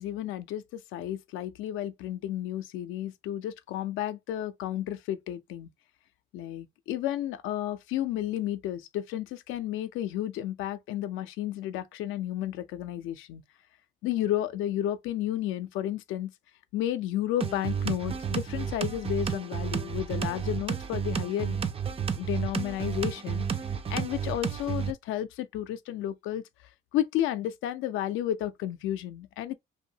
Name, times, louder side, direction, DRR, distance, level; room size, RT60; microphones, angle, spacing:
voice 1, 0.0-5.7 6.3-13.4 14.0-16.3 16.7-21.6 22.1-23.5 23.9-26.4 26.9-29.5, left 12 dB, 85° left, 0.4 m, -32 dB
sound 1, 17.4-24.9, right 7 dB, 30° right, 0.4 m, -31 dB
2.6 x 2.2 x 2.7 m
cardioid pair, 90°, 20 cm